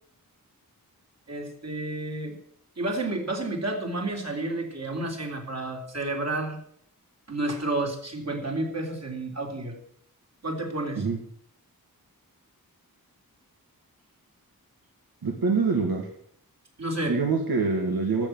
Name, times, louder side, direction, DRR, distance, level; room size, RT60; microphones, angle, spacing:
voice 1, 1.3-2.4 2.8-6.6 7.3-9.8 10.4-11.0 16.8-17.2, right 2 dB, 45° right, 2 dB, 3.8 m, -30 dB
voice 2, 15.2-16.1 17.1-18.3, right 4 dB, 80° right, 2 dB, 2.0 m, -25 dB
13.0 x 7.7 x 9.4 m, 0.65 s
wide cardioid pair, 95°, 35 cm